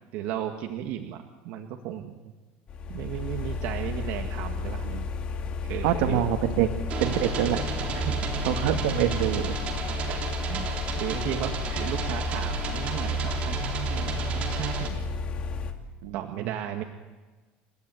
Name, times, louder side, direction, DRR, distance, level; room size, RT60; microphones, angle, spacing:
voice 1, 0.1-2.2 2.9-4.9 5.6-6.2 8.0-8.3 10.1-10.2 10.5-10.7 11.0-15.1 16.1-16.8, right 11 dB, 60° right, 3 dB, 2.0 m, -34 dB
sound 1, 2.7-15.7, left 4 dB, 30° left, 2.4 m, -32 dB
voice 2, 5.8-6.7 7.0-7.6 7.9-8.0 8.5-9.6 16.0-16.1 16.4-16.5, right 10 dB, 90° right, 5 dB, 2.0 m, -25 dB
sound 2, 6.9-14.9, right 7 dB, 35° right, 3.6 m, -33 dB
29.5 x 16.5 x 9.3 m, 1.3 s
cardioid pair, 170°, 4 cm